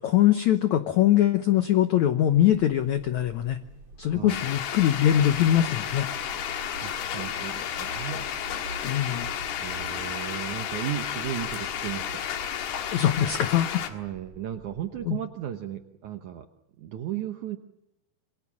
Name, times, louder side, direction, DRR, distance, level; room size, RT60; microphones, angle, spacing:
voice 1, 0.0-3.6 4.0-6.1 8.8-9.3 12.9-13.9 15.1-15.2, left 11 dB, 90° left, 10 dB, 1.6 m, -22 dB
sound 1, 2.3-15.1, right 3 dB, 40° right, 3.1 m, -46 dB
voice 2, 4.0-4.4 6.8-8.2 9.6-12.2 13.8-16.5 16.8-17.6, right 11 dB, 75° right, 7 dB, 1.8 m, -35 dB
sound 2, 4.3-13.9, left 9 dB, 75° left, 3.6 m, -32 dB
27.5 x 23.0 x 7.4 m, 0.91 s
omnidirectional pair, 4.8 m